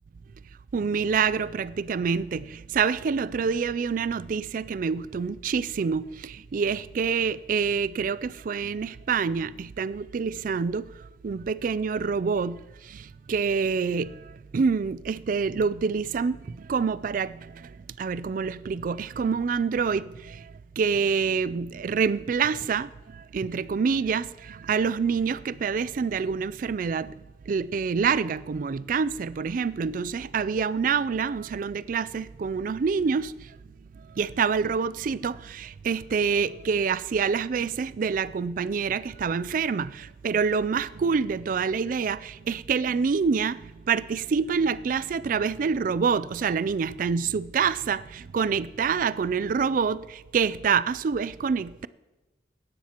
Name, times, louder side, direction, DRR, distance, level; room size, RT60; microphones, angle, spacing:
voice 1, 0.7-10.8 11.2-12.6 13.3-14.1 14.5-17.3 18.0-20.4 20.8-22.9 23.3-27.1 27.5-33.3 34.2-43.6 43.9-51.9, right 5 dB, 45° right, 0.3 m, -26 dB
17.0 x 13.0 x 2.9 m
head